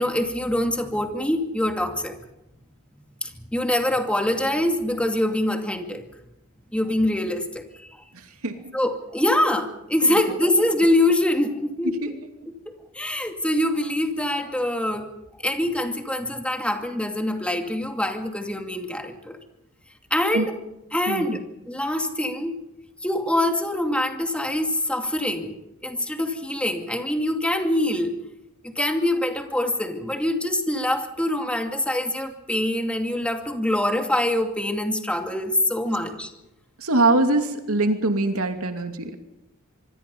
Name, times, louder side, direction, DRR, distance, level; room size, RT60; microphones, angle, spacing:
voice 1, 0.0-2.2 3.2-6.0 6.7-7.9 8.7-12.2 12.9-15.1 15.4-19.4 20.1-20.5 20.9-21.4 21.6-22.6 23.0-25.5 25.8-28.1 28.6-36.3, left 1 dB, 5° left, 4 dB, 2.4 m, -24 dB
voice 2, 8.1-8.7 10.1-10.2 11.8-12.1 20.3-20.5 21.1-21.4 36.8-39.2, right 2 dB, 85° right, 6 dB, 2.8 m, -23 dB
26.0 x 23.5 x 5.5 m, 0.89 s
head